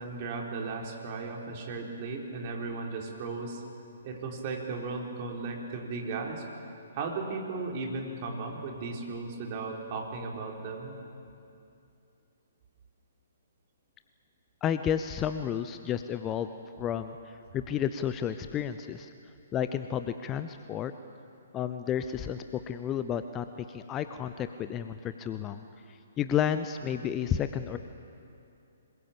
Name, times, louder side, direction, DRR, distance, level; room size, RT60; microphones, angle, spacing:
voice 1, 0.0-3.6 4.0-6.4 6.9-11.0, right 3 dB, 35° right, 0 dB, 4.4 m, -36 dB
voice 2, 14.6-16.5 16.8-19.1 19.5-20.9 21.5-25.6 25.9-27.8, left 9 dB, 20° left, 10 dB, 0.8 m, -31 dB
26.0 x 22.0 x 8.8 m, 2.6 s
figure-of-eight pair, 125°, 0 cm